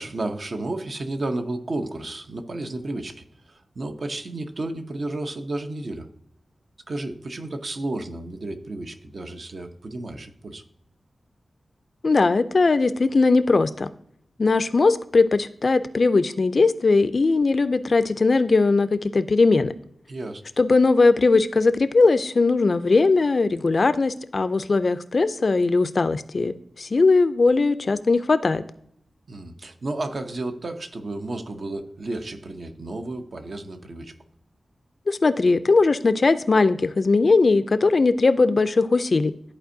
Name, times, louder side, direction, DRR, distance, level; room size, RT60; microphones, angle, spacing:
voice 1, 0.0-6.1 6.9-10.6 20.1-20.4 29.3-34.1, right 2 dB, 55° right, 6 dB, 0.7 m, -32 dB
voice 2, 12.0-13.9 14.4-19.7 20.6-28.6 35.1-39.3, left 3 dB, 50° left, 12 dB, 0.4 m, -19 dB
13.0 x 4.3 x 2.6 m, 0.73 s
wide cardioid pair, 100°, 0 cm